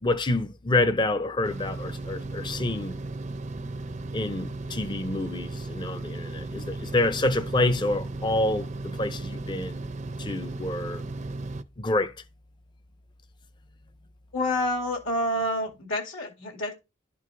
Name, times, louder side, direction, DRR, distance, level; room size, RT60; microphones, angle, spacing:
voice 1, 0.0-3.0 4.1-9.8 10.2-11.0 11.8-12.1, left 2 dB, 20° left, 0.5 m, -27 dB
sound 1, 1.4-11.6, right 2 dB, 35° right, 0.5 m, -35 dB
voice 2, 14.3-16.7, left 1 dB, 70° left, 2.3 m, -28 dB
12.0 x 4.6 x 2.6 m
head